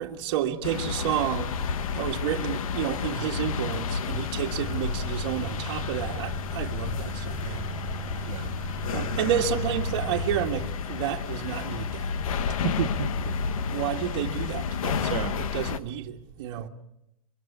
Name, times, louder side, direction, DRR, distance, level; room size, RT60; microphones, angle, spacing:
voice 1, 0.0-1.6 1.9-7.7 8.9-12.1 12.5-12.6 13.7-16.7, right 10 dB, 45° right, 1.7 m, -31 dB
sound 1, 0.6-15.8, left 6 dB, 70° left, 1.5 m, -31 dB
sound 2, 4.5-10.7, right 6 dB, 15° right, 1.2 m, -39 dB
voice 2, 12.6-13.4 15.0-15.4, right 12 dB, 75° right, 1.0 m, -32 dB
24.0 x 23.0 x 7.3 m
supercardioid pair, 175°, 18 cm